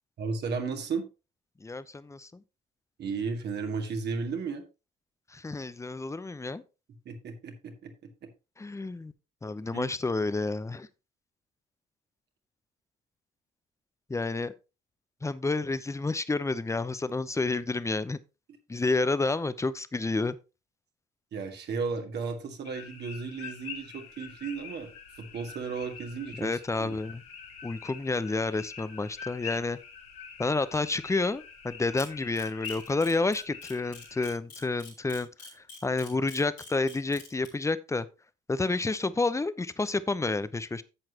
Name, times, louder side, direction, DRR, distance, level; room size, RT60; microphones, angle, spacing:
voice 1, 0.2-1.1 3.0-4.6 7.1-7.9 9.7-9.9 21.3-24.9 25.2-27.0, right 5 dB, 55° right, 2.1 m, -34 dB
voice 2, 1.6-2.4 5.3-6.6 8.6-9.1 9.4-10.9 14.1-14.5 15.2-18.2 18.7-20.4 26.4-27.2 27.6-29.8 30.4-35.3 35.8-38.1 38.5-40.8, left 3 dB, 15° left, 0.8 m, -30 dB
sound 1, 22.6-34.3, left 6 dB, 75° left, 2.4 m, -45 dB
Camera, 32.0-37.5, left 5 dB, 90° left, 3.8 m, -46 dB
11.0 x 7.8 x 2.9 m
hypercardioid pair, 50°, 21 cm